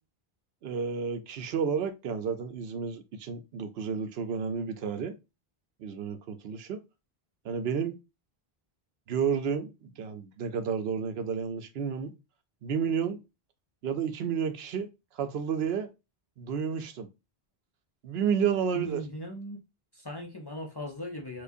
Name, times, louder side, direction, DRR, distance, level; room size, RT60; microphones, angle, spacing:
voice 1, 0.6-5.1 5.8-6.8 7.4-8.0 9.1-12.1 12.6-13.2 13.8-14.9 15.2-15.9 16.4-17.1 18.0-19.0, right 7 dB, 80° right, 0.8 m, -31 dB
voice 2, 18.7-19.6 19.9-21.4, equal, 35° left, 0.4 m, -38 dB
4.6 x 2.3 x 2.5 m
omnidirectional pair, 1.0 m